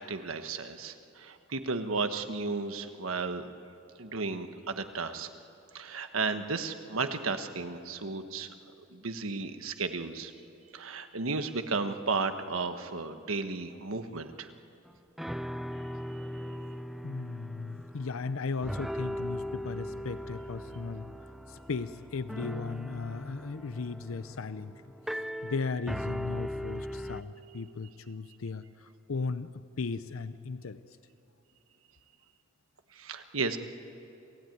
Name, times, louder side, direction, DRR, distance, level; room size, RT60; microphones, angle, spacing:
voice 1, 0.0-3.5 4.0-5.3 5.7-8.5 8.9-10.3 10.7-14.5 33.0-33.6, right 4 dB, 85° right, 8 dB, 1.3 m, -34 dB
sound 1, 14.9-15.0 15.2-18.4 18.6-27.2, equal, ahead, 0.5 m, -39 dB
voice 2, 17.0-21.1 21.5-24.7 25.1-29.5 29.8-30.8, left 4 dB, 85° left, 13 dB, 0.6 m, -36 dB
27.5 x 16.5 x 9.3 m, 2.6 s
head